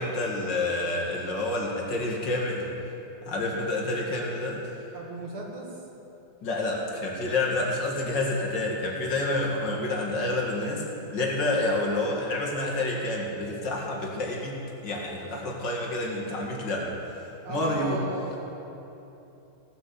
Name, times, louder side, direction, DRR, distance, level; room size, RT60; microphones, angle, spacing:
voice 1, 0.0-2.7 3.3-4.6 6.4-10.8 11.1-14.6 14.8-18.0, left 2 dB, 55° left, -2 dB, 2.6 m, -28 dB
voice 2, 4.9-5.7 17.4-18.4, right 1 dB, 75° right, -1 dB, 2.8 m, -35 dB
17.0 x 7.7 x 6.9 m, 3.0 s
omnidirectional pair, 2.4 m